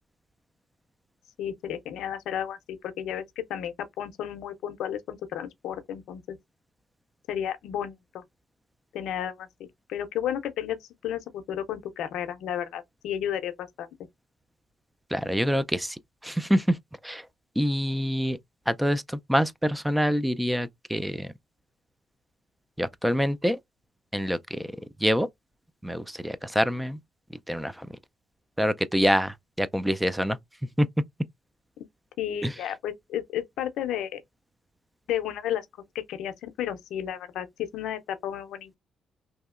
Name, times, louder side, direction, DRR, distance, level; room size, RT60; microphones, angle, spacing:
voice 1, 1.4-6.4 7.3-8.2 8.9-13.9 32.2-34.2 35.1-35.7 35.9-38.8, left 10 dB, 80° left, 0.5 m, -33 dB
voice 2, 15.1-16.0 16.2-16.8 17.0-17.3 17.6-18.4 18.7-21.3 22.8-23.6 24.1-24.7 25.0-25.3 25.8-27.0 27.5-27.9 28.6-30.4 30.8-30.9 32.4-32.5, equal, 5° right, 0.3 m, -26 dB
2.8 x 2.7 x 2.4 m
cardioid pair, 90°, 0 cm